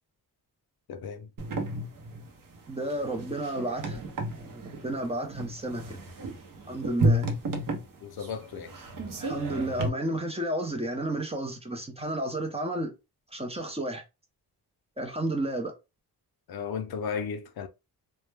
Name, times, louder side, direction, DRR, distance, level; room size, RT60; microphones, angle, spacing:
voice 1, 0.9-1.3 8.0-8.8 16.5-17.7, left 6 dB, 65° left, 0.5 m, -35 dB
sound 1, 1.4-9.9, right 1 dB, 55° right, 0.7 m, -32 dB
voice 2, 2.7-4.1 4.3-6.0 6.7-7.3 9.2-12.9 13.3-14.0 15.0-15.7, right 1 dB, 15° right, 0.5 m, -32 dB
2.2 x 2.0 x 3.2 m
wide cardioid pair, 115°, 41 cm